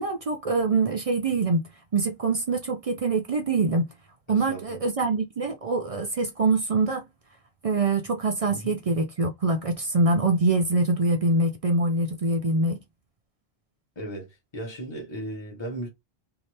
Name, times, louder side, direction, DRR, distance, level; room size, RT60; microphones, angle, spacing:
voice 1, 0.0-1.7 1.9-3.9 4.3-7.0 7.6-12.8, right 3 dB, 50° right, 0.4 m, -24 dB
voice 2, 4.3-4.8 8.5-8.8 14.0-15.9, right 1 dB, 25° left, 1.2 m, -36 dB
2.7 x 2.6 x 3.2 m
omnidirectional pair, 1.0 m